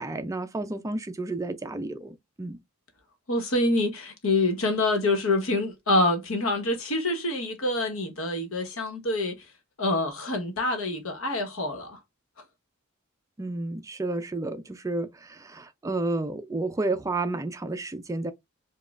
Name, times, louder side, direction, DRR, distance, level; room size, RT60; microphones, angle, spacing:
voice 1, 0.0-2.6 13.4-18.3, right 2 dB, 15° right, 0.3 m, -31 dB
voice 2, 3.3-9.4 9.8-12.0, left 2 dB, 70° left, 1.1 m, -26 dB
5.1 x 2.3 x 2.4 m
head